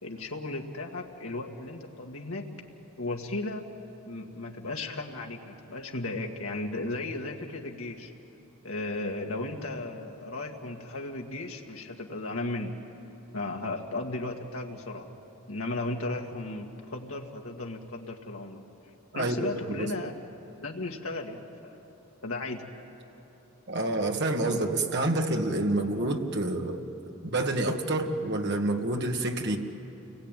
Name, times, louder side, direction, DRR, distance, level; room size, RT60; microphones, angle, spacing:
voice 1, 0.0-2.6 3.0-3.8 4.1-8.1 8.6-12.8 13.3-15.1 15.5-18.6 19.1-20.1 20.6-21.8 22.2-22.7, left 2 dB, 75° left, 1 dB, 2.1 m, -35 dB
voice 2, 19.1-19.9 23.7-26.8 27.2-29.6, right 2 dB, 50° right, 3 dB, 1.8 m, -28 dB
29.5 x 21.5 x 9.2 m, 2.9 s
head